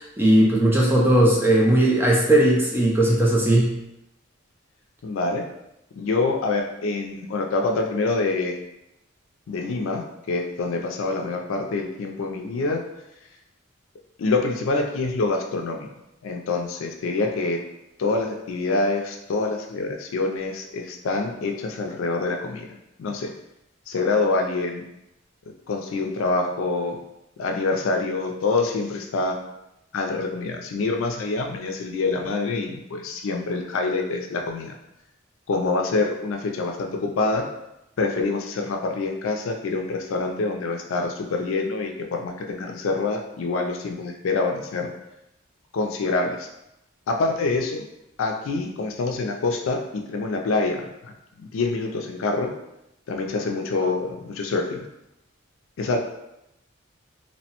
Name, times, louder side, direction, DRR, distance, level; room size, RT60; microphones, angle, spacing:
voice 1, 0.0-3.7, right 1 dB, 10° right, -2 dB, 0.4 m, -18 dB
voice 2, 5.0-5.4 6.0-8.6 9.5-12.8 14.2-15.9 16.2-17.6 18.0-22.7 23.0-23.3 23.9-24.8 25.7-27.0 27.4-29.4 29.9-34.7 35.5-37.5 38.0-44.9 45.7-46.5 47.1-47.8 48.2-51.1 51.4-52.5 53.1-54.8 55.8-56.0, left 3 dB, 75° left, 3 dB, 0.4 m, -26 dB
2.7 x 2.1 x 2.8 m, 0.86 s
head